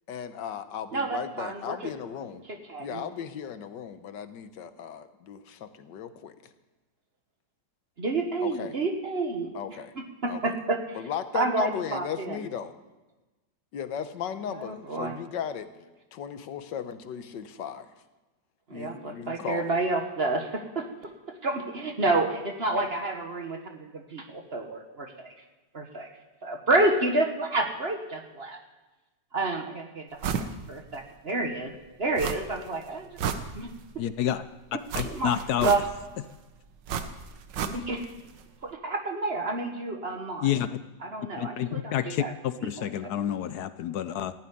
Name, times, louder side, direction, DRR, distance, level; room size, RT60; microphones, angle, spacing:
voice 1, 0.1-2.4 2.8-6.3 8.4-8.7 9.5-9.9 10.3-10.4 10.9-12.7 13.7-17.9 18.7-19.7, left 8 dB, 90° left, 10 dB, 1.6 m, -36 dB
voice 2, 0.9-1.9 2.5-3.0 8.0-9.5 10.2-11.0 11.3-12.4 14.5-15.1 18.7-20.9 21.4-25.3 25.7-26.1 26.4-28.6 29.3-31.7 32.0-33.2 33.5-33.7 35.0-35.3 35.6-35.8 37.7-38.1 38.6-40.5 41.0-42.3 42.8-43.1, right 2 dB, 40° right, 4 dB, 1.4 m, -29 dB
sound 1, 30.2-30.5 30.9-31.0 32.2-32.7 33.0-34.0 34.9-36.2 36.9-38.1 38.4-38.5, right 7 dB, 85° right, 1.6 m, -32 dB
voice 3, 34.0-34.4 34.9-35.7 40.4-40.8 41.4-44.3, left 11 dB, 70° left, 13 dB, 1.1 m, -29 dB
15.0 x 7.3 x 9.8 m, 1.1 s
omnidirectional pair, 1.9 m